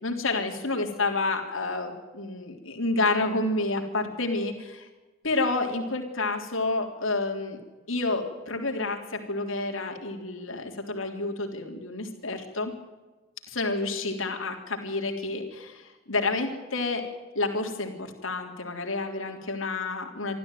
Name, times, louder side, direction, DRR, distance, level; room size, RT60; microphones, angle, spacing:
voice 1, 0.0-4.9 5.2-7.6 7.9-12.7 13.5-17.1 17.4-20.4, left 2 dB, 75° left, 3 dB, 3.6 m, -29 dB
25.5 x 14.0 x 9.3 m, 1.2 s
head